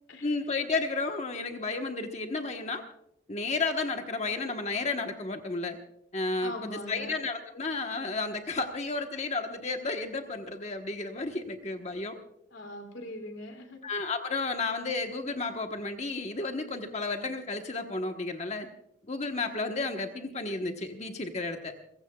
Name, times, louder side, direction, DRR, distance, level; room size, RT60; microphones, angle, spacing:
voice 1, 0.2-2.8 3.3-5.8 6.1-12.2 13.8-18.7 19.1-21.7, left 3 dB, 35° left, 5 dB, 1.2 m, -32 dB
voice 2, 6.4-7.2 12.5-13.8, left 1 dB, 75° left, 5 dB, 2.8 m, -41 dB
30.0 x 16.0 x 2.3 m, 0.77 s
head